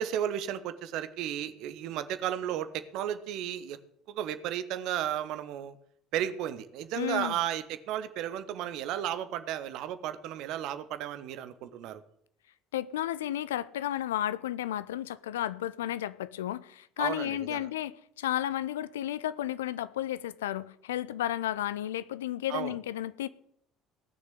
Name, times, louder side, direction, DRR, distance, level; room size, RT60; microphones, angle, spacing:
voice 1, 0.0-3.8 4.1-5.8 6.1-12.0 17.0-17.7 22.5-22.7, right 11 dB, 55° right, 1.0 m, -34 dB
voice 2, 7.0-7.4 12.7-23.3, left 12 dB, 70° left, 0.5 m, -33 dB
17.5 x 6.5 x 8.3 m
figure-of-eight pair, 60°, 0 cm